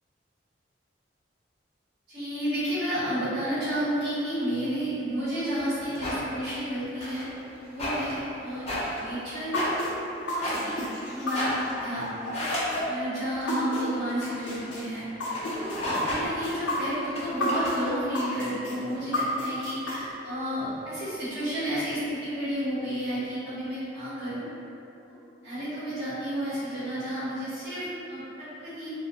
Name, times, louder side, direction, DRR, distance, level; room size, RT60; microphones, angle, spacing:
voice 1, 2.1-7.3 7.6-9.5 10.3-10.8 11.1-15.8 16.0-24.5 25.1-25.2 25.4-28.9, equal, 65° right, -13 dB, 1.2 m, -31 dB
sound 1, 5.6-6.2 6.9-12.8 13.3-18.0, left 1 dB, 35° left, 0.6 m, -35 dB
sound 2, 9.5-13.8 14.2-17.8 18.1-20.0, left 2 dB, 80° left, 0.5 m, -31 dB
2.4 x 2.2 x 2.7 m, 2.8 s
head